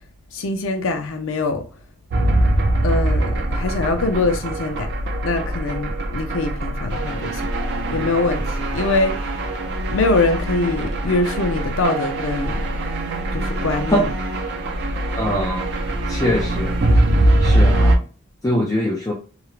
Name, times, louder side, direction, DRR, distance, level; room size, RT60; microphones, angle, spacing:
voice 1, 0.3-1.6 2.8-4.9 5.2-7.5 7.9-8.5 8.7-9.2 9.9-12.7 13.3-14.1, left 3 dB, 75° left, 0.5 m, -23 dB
sound 1, 2.1-18.0, right 1 dB, 50° right, 0.4 m, -22 dB
voice 2, 15.2-15.7 16.1-16.8 17.4-18.0 18.4-19.1, equal, 15° left, 0.3 m, -22 dB
2.3 x 2.0 x 3.0 m
head